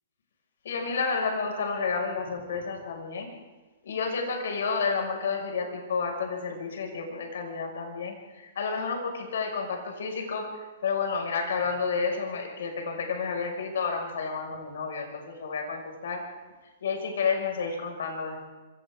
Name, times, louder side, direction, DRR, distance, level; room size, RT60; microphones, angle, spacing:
voice 1, 0.6-3.3 3.8-10.5 10.8-16.2 16.8-18.5, left 5 dB, 80° left, 2 dB, 5.7 m, -30 dB
26.5 x 26.5 x 3.7 m, 1.2 s
hypercardioid pair, 165°, 0 cm